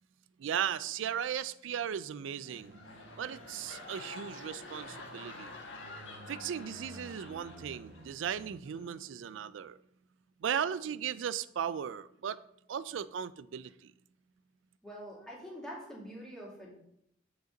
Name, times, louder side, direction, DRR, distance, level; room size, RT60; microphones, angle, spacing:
voice 1, 0.4-2.8 3.2-5.5 6.3-9.8 10.4-12.4 12.7-13.9, right 8 dB, 75° right, 0.4 m, -36 dB
sound 1, 2.3-8.3 8.6-9.0, left 2 dB, 70° left, 1.4 m, -48 dB
sound 2, 2.5-8.6, right 1 dB, 60° right, 0.8 m, -54 dB
voice 2, 14.8-16.8, equal, 5° left, 2.6 m, -45 dB
8.0 x 5.2 x 3.8 m
head